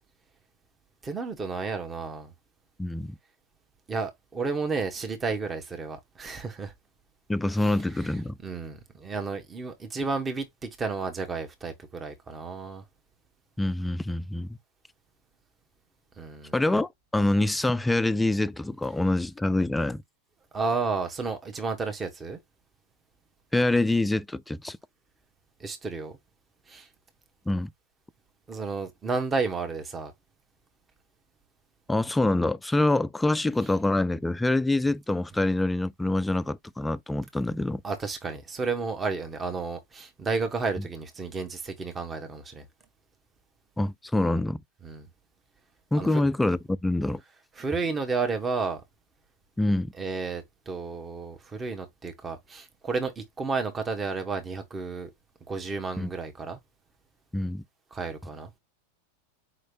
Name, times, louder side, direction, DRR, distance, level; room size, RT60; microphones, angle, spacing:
voice 1, 1.0-2.3 3.9-6.7 7.6-12.8 16.2-16.6 20.5-22.4 25.6-26.1 26.7-26.9 28.5-30.1 37.8-42.7 44.8-45.1 45.9-46.2 47.6-48.8 50.0-55.1 55.5-56.6 57.9-58.5, right 4 dB, 20° right, 1.1 m, -32 dB
voice 2, 2.8-3.2 7.3-8.4 13.6-14.6 16.5-20.0 23.5-24.8 27.5-27.7 31.9-37.8 43.8-44.6 45.9-47.2 49.6-49.9 56.0-56.1 57.3-57.6, left 2 dB, 5° left, 0.3 m, -25 dB
5.0 x 3.2 x 2.7 m
figure-of-eight pair, 90°, 0 cm